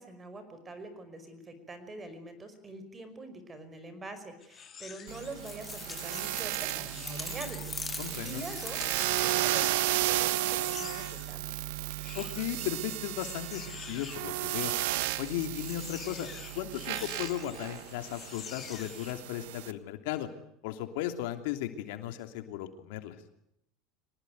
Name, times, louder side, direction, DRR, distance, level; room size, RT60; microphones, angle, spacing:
voice 1, 0.0-11.6, right 2 dB, 20° right, 10 dB, 5.4 m, -45 dB
sound 1, 4.4-11.4 11.9-19.2, left 7 dB, 30° left, 2.9 m, -48 dB
sound 2, 5.1-19.7, right 16 dB, 80° right, 1.3 m, -34 dB
sound 3, 5.4-9.6, left 3 dB, 15° left, 0.9 m, -42 dB
voice 2, 8.0-8.4 12.1-14.7 15.2-16.3 16.5-20.3 20.6-23.1, left 12 dB, 75° left, 7 dB, 2.9 m, -36 dB
24.0 x 19.5 x 9.5 m, 0.76 s
supercardioid pair, 115°, 0 cm